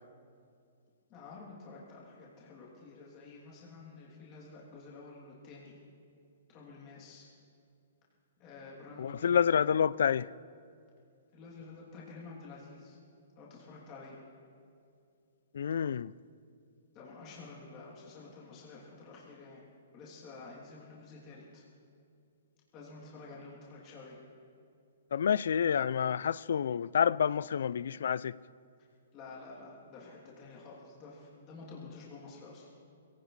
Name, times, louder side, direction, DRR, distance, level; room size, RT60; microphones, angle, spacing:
voice 1, 1.1-5.8 6.5-7.3 8.4-9.3 11.3-13.0 13.4-14.2 16.9-19.6 19.9-21.6 22.7-24.2 29.1-32.7, left 3 dB, 25° left, 3.0 m, -50 dB
voice 2, 9.0-10.3 15.5-16.1 25.1-28.4, left 8 dB, 75° left, 0.3 m, -28 dB
22.5 x 17.5 x 3.3 m
hypercardioid pair, 160°, 0 cm